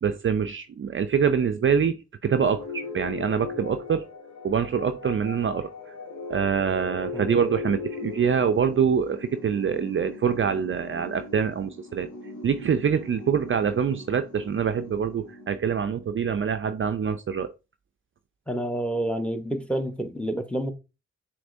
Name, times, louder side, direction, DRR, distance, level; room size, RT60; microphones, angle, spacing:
voice 1, 0.0-2.0 2.2-4.0 4.4-5.7 6.3-12.1 12.4-17.5, right 7 dB, 45° right, 0.4 m, -25 dB
sound 1, 2.4-16.1, left 3 dB, 75° left, 1.3 m, -39 dB
voice 2, 18.5-20.7, right 1 dB, 5° left, 0.9 m, -29 dB
6.0 x 3.2 x 2.6 m
supercardioid pair, 40°, 30 cm